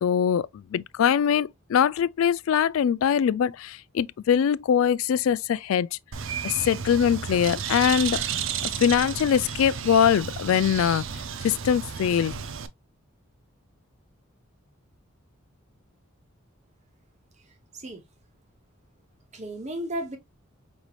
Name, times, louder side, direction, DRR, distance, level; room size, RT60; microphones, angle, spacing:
voice 1, 0.0-5.9 6.4-8.2 8.8-11.0 11.4-12.4, left 8 dB, 80° left, 0.3 m, -22 dB
Bird, 6.1-12.7, right 7 dB, 70° right, 0.5 m, -32 dB
voice 2, 17.5-18.0 19.3-20.2, right 1 dB, 35° right, 1.0 m, -34 dB
5.3 x 3.1 x 2.3 m
head